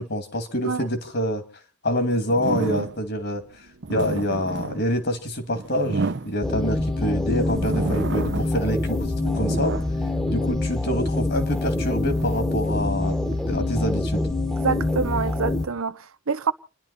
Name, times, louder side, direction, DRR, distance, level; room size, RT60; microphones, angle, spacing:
voice 1, 0.0-1.4 1.8-3.4 3.9-9.7 10.3-13.1 13.5-14.2, equal, 50° left, 2.3 m, -26 dB
sound 1, 2.3-3.2 3.7-6.9 7.4-8.7 9.0-10.9 11.5-13.6, right 3 dB, 55° right, 0.8 m, -31 dB
sound 2, 6.4-15.7, left 2 dB, 5° left, 1.2 m, -25 dB
voice 2, 14.6-16.5, right 5 dB, 85° right, 0.8 m, -26 dB
29.5 x 11.0 x 4.1 m
head